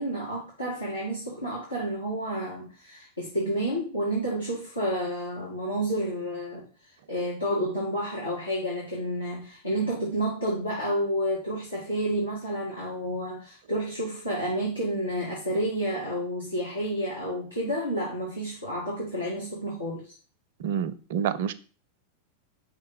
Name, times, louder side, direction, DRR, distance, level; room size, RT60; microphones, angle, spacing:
voice 1, 0.0-6.7 7.1-20.1, equal, 85° left, 1.7 m, -30 dB
voice 2, 20.6-21.5, right 8 dB, 55° right, 0.5 m, -28 dB
5.3 x 3.3 x 5.4 m
figure-of-eight pair, 90°, 0 cm